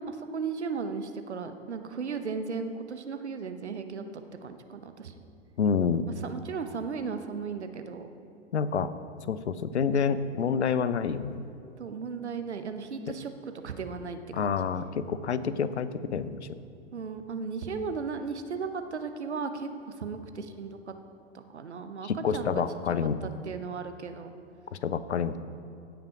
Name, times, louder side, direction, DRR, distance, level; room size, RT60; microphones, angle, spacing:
voice 1, 0.0-4.0 4.4-5.2 6.2-8.1 11.8-13.3 13.6-14.6 16.9-20.9 21.3-22.9 23.2-24.3, right 5 dB, 75° right, 8 dB, 0.9 m, -36 dB
voice 2, 5.6-6.1 8.5-8.9 9.3-11.4 14.3-16.4 22.0-23.2 24.7-25.4, left 6 dB, 75° left, 14 dB, 0.6 m, -28 dB
16.0 x 5.9 x 5.0 m, 2.7 s
figure-of-eight pair, 95°, 34 cm